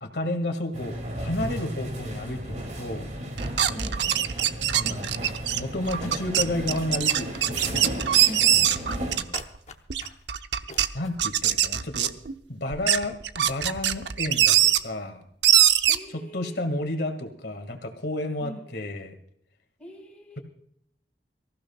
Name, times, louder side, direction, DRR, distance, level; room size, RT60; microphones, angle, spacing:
voice 1, 0.0-3.1 4.7-7.8 8.5-9.4 10.9-12.1 12.5-15.2 16.1-19.1, left 1 dB, 65° left, 6 dB, 2.1 m, -32 dB
sound 1, 0.7-9.2, right 1 dB, 45° right, 2.6 m, -34 dB
sound 2, 3.4-9.6 9.9-10.9 11.2-12.3 12.7-14.8 15.4-16.0, right 11 dB, 80° right, 0.7 m, -22 dB
voice 2, 3.7-4.3 8.2-8.7 15.9-16.8 18.4-18.6 19.8-20.4, equal, 10° left, 0 dB, 5.2 m, -42 dB
sound 3, 4.4-5.0 5.7-6.8 7.1-8.1 8.3-9.0 9.3-10.3 10.7-11.1, left 4 dB, 40° left, 1.0 m, -45 dB
25.0 x 15.0 x 2.4 m, 0.69 s
head